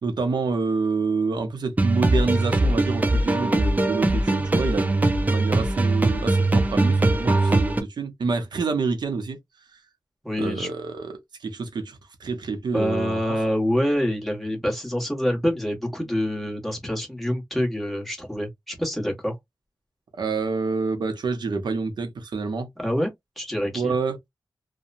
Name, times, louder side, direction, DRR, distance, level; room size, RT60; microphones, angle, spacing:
voice 1, 0.0-9.4 10.4-13.2 20.2-22.7 23.7-24.2, right 4 dB, 75° right, 0.7 m, -27 dB
sound 1, 1.8-7.8, right 2 dB, 20° right, 0.5 m, -21 dB
voice 2, 10.2-10.7 12.7-19.3 22.8-23.1 23.4-23.9, equal, ahead, 1.2 m, -26 dB
2.8 x 2.1 x 2.5 m
wide cardioid pair, 125°, 7 cm